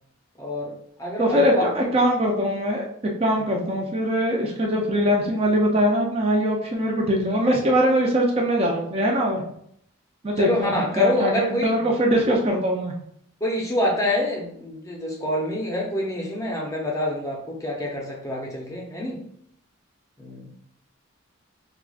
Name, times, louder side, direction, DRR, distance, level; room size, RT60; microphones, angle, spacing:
voice 1, 0.4-1.7 10.4-11.9 13.4-19.2 20.2-20.5, left 1 dB, 15° left, -2 dB, 0.6 m, -26 dB
voice 2, 1.2-2.9 3.2-9.4 10.2-12.9, equal, 30° right, 0 dB, 0.5 m, -22 dB
4.7 x 2.3 x 2.4 m, 0.69 s
head